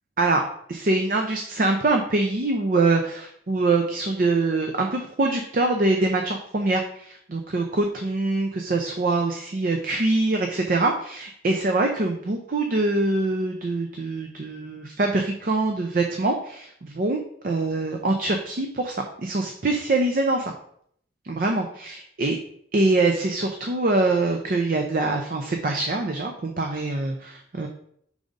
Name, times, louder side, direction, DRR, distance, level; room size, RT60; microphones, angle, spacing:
voice 1, 0.7-20.5 21.2-22.4 22.7-27.7, right 2 dB, 50° right, 4 dB, 0.5 m, -24 dB
4.8 x 3.9 x 5.1 m, 0.68 s
head